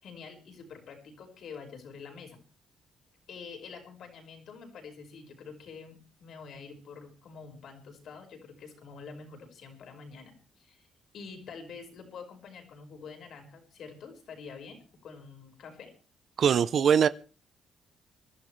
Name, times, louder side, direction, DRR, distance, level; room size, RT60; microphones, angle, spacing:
voice 1, 0.0-2.4 3.3-10.9 11.1-15.9, left 5 dB, 65° left, 5.3 m, -47 dB
voice 2, 16.4-17.1, right 7 dB, 60° right, 0.7 m, -22 dB
25.0 x 12.0 x 3.3 m
cardioid pair, 90°, 0 cm